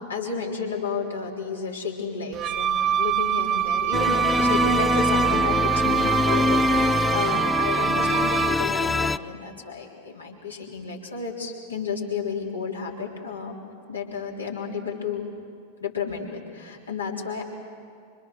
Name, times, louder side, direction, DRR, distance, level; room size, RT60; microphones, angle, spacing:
voice 1, 0.0-13.6 13.9-15.2 15.8-17.4, left 5 dB, 75° left, -1 dB, 3.6 m, -32 dB
Wind instrument woodwind instrument, 2.3-8.7, right 9 dB, 30° right, 0.7 m, -24 dB
sound 1, 3.9-9.2, left 3 dB, 15° left, 0.5 m, -24 dB
26.0 x 25.0 x 6.5 m, 2.3 s
figure-of-eight pair, 90°, 0 cm